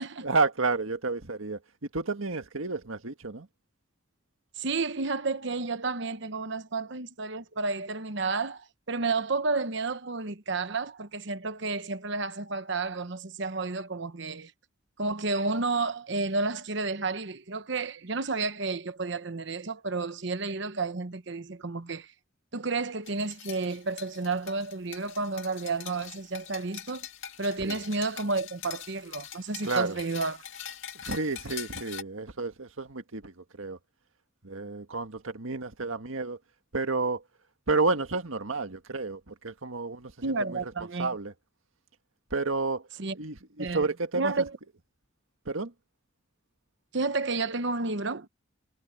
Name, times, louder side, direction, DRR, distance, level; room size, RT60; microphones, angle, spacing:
voice 1, 0.2-1.6 1.9-3.5 27.6-27.8 29.6-30.0 31.0-33.8 34.4-36.4 36.7-37.2 37.7-40.7 41.0-41.3 42.3-42.9 43.1-44.3 45.5-45.7, right 3 dB, 75° right, 1.7 m, -30 dB
voice 2, 4.6-14.5 15.0-22.1 22.5-27.1 27.4-30.4 40.2-41.1 43.0-43.1 43.6-43.9 44.1-44.6 46.9-48.3, right 3 dB, 60° right, 1.0 m, -31 dB
sound 1, 23.1-32.0, left 9 dB, 70° left, 2.1 m, -43 dB
head